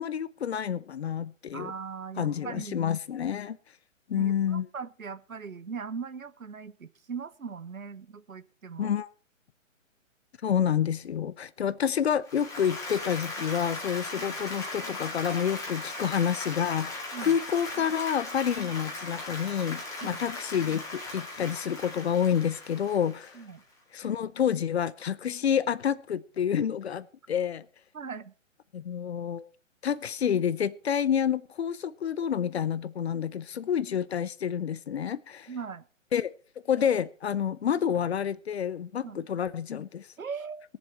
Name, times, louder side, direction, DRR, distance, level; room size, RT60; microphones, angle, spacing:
voice 1, 0.0-1.7 2.2-3.6 4.1-4.7 8.8-9.1 10.4-23.3 23.9-27.6 28.7-29.5 29.8-35.5 36.1-36.3 36.7-40.1, left 8 dB, 55° left, 0.7 m, -28 dB
voice 2, 1.5-2.9 4.1-8.9 14.2-14.4 17.1-17.4 20.0-20.2 23.3-23.6 27.9-28.3 35.5-35.8 39.0-39.2 40.2-40.7, right 6 dB, 90° right, 1.0 m, -39 dB
Applause, 12.3-23.6, left 2 dB, 10° left, 2.3 m, -38 dB
21.0 x 7.4 x 4.4 m
figure-of-eight pair, 140°, 40 cm